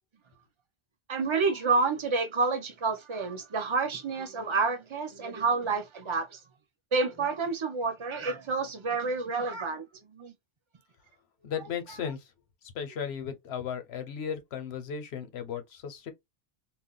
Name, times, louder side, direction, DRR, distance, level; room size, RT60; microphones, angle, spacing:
voice 1, 1.1-6.4 6.9-9.9 10.2-10.3, right 4 dB, 35° right, 0.5 m, -29 dB
voice 2, 11.4-12.2 12.7-16.1, left 7 dB, 90° left, 1.0 m, -35 dB
2.4 x 2.2 x 3.7 m
omnidirectional pair, 1.0 m